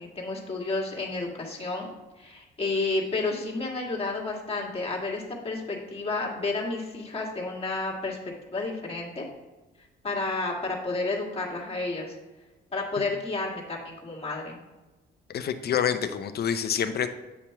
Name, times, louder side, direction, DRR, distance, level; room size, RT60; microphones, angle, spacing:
voice 1, 0.0-1.9 2.2-9.3 10.0-12.2 12.7-14.6, left 3 dB, 30° left, -2 dB, 1.7 m, -31 dB
voice 2, 15.3-17.1, left 8 dB, 55° left, 9 dB, 0.6 m, -27 dB
8.4 x 3.0 x 5.6 m, 1.1 s
cardioid pair, 90°, 20 cm